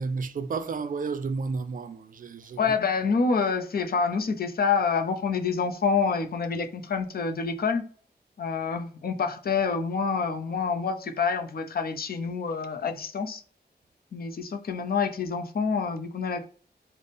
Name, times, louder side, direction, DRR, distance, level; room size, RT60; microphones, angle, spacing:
voice 1, 0.0-2.7, right 4 dB, 55° right, 0.4 m, -32 dB
voice 2, 2.6-7.9 8.4-13.4 14.1-16.5, left 5 dB, 65° left, 0.5 m, -27 dB
3.4 x 2.0 x 4.0 m
wide cardioid pair, 130°, 17 cm